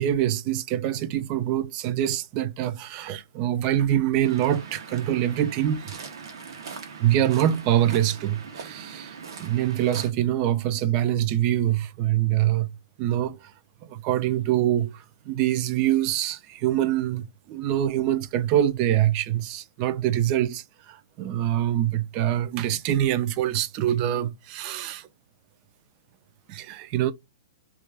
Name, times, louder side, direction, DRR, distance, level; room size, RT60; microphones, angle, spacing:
voice 1, 0.0-5.9 7.0-12.7 13.0-13.5 13.8-25.1 26.5-27.1, right 12 dB, 35° right, 0.3 m, -25 dB
Waves surf, 4.2-10.1, right 5 dB, 75° right, 0.7 m, -41 dB
2.3 x 2.3 x 3.2 m
hypercardioid pair, 140°, 2 cm